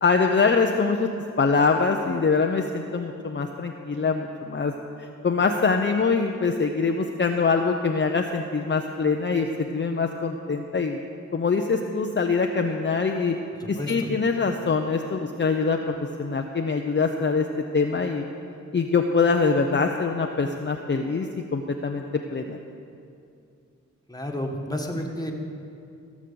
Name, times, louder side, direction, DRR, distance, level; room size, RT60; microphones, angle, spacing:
voice 1, 0.0-1.1 1.4-4.7 5.0-11.0 11.3-13.4 13.7-17.5 17.7-18.2 18.7-22.0 22.3-22.6, left 4 dB, 40° left, 3 dB, 0.7 m, -24 dB
voice 2, 13.8-14.1 24.1-25.3, left 1 dB, 10° left, 1 dB, 1.6 m, -31 dB
16.0 x 6.3 x 6.9 m, 2.5 s
cardioid pair, 55°, 30 cm